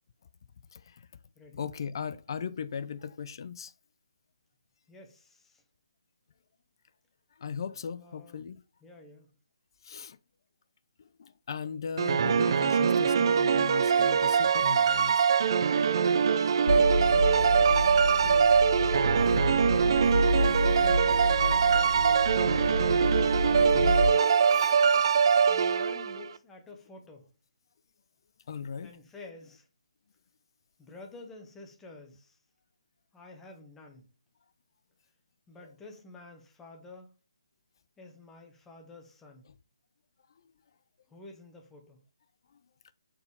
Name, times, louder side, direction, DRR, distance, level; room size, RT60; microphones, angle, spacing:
voice 1, 0.7-1.1 1.5-3.7 7.4-8.6 9.8-10.2 11.2-15.2 23.5-24.0 24.5-24.8 28.5-28.9 35.6-35.7, left 6 dB, 45° left, 0.3 m, -38 dB
voice 2, 4.9-5.6 8.0-8.4 8.8-9.3 18.1-18.5 19.0-20.0 20.5-22.8 25.5-27.3 28.8-29.7 30.8-32.4 33.1-34.1 35.5-37.1 38.0-39.4 41.1-42.0, left 2 dB, 10° left, 1.0 m, -50 dB
sound 1, 12.0-26.3, right 6 dB, 45° right, 0.3 m, -23 dB
sound 2, 16.7-24.1, equal, 60° left, 2.1 m, -29 dB
6.7 x 4.3 x 3.4 m
figure-of-eight pair, 145°, 3 cm